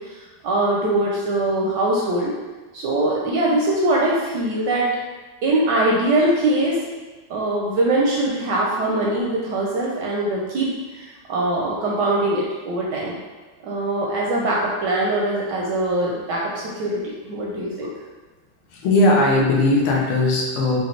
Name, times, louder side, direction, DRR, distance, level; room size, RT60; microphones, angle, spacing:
voice 1, 0.4-2.3 2.7-4.9 5.4-6.8 7.3-10.7 10.9-13.2 13.6-17.9, right 1 dB, 70° right, -3 dB, 1.0 m, -22 dB
voice 2, 18.7-20.8, left 2 dB, 85° left, -2 dB, 1.7 m, -18 dB
5.0 x 2.5 x 3.1 m, 1.3 s
omnidirectional pair, 2.3 m